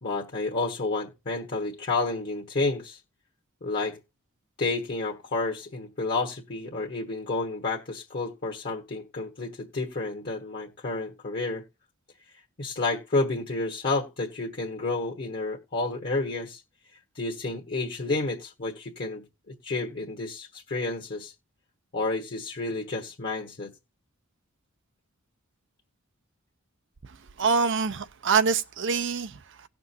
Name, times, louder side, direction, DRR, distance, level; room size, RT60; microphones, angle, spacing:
voice 1, 0.0-3.0 3.6-4.0 4.6-11.6 12.6-16.6 17.1-21.3 21.9-23.7, left 3 dB, 45° left, 1.3 m, -30 dB
voice 2, 27.0-29.7, right 5 dB, 60° right, 0.6 m, -26 dB
18.0 x 6.1 x 2.8 m
head